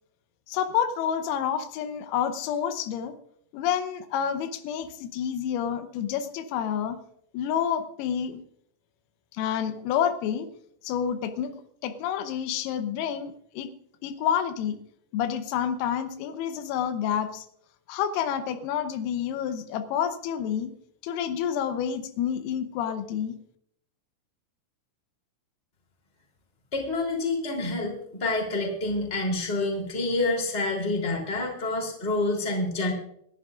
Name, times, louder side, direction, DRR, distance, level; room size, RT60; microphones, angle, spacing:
voice 1, 0.5-3.1 3.5-7.0 7.3-8.4 9.3-10.5 10.8-11.5 11.8-13.7 14.0-14.8 15.1-17.5 17.9-20.7 21.0-23.4, left 8 dB, 90° left, 9 dB, 3.6 m, -29 dB
voice 2, 26.7-32.9, left 2 dB, 15° left, -1 dB, 2.3 m, -28 dB
27.0 x 11.0 x 2.5 m, 0.70 s
omnidirectional pair, 5.9 m